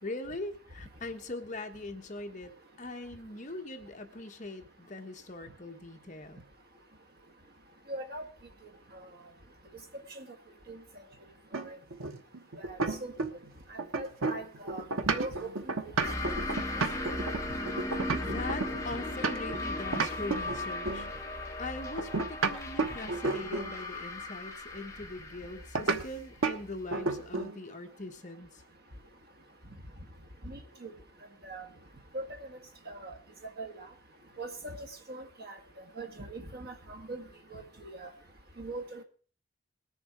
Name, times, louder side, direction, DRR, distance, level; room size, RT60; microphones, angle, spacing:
voice 1, 0.0-2.5 2.8-6.4 18.1-21.1 21.6-28.6, left 2 dB, 35° left, 6 dB, 1.3 m, -41 dB
voice 2, 7.9-8.2 10.2-10.3 10.7-10.8 11.5-11.8 12.6-13.1 13.7-16.1 16.7-16.8 30.4-30.9 31.4-31.7 32.1-32.5 32.9-33.1 33.6-33.7 34.4-34.8 35.1-35.6 36.0-37.2 37.5-38.1 38.6-39.0, right 2 dB, 50° right, 5 dB, 1.8 m, -41 dB
sound 1, 11.5-13.5 13.8-19.6 19.9-21.1 22.0-23.8 25.7-26.0 26.4-26.6 26.9-27.6, right 3 dB, 85° right, 1.2 m, -32 dB
sound 2, 16.0-27.2, left 2 dB, 15° left, 1.6 m, -37 dB
20.0 x 7.2 x 4.8 m, 0.41 s
head